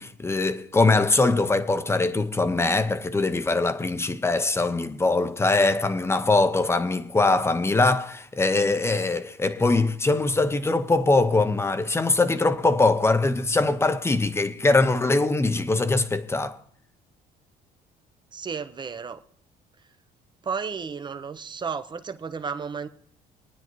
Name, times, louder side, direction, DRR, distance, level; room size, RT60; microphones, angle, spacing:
voice 1, 0.0-16.6, left 3 dB, 15° left, 0.8 m, -22 dB
voice 2, 18.3-19.2 20.4-22.9, right 6 dB, 25° right, 0.7 m, -33 dB
24.5 x 9.4 x 3.1 m
cardioid pair, 110°, 17 cm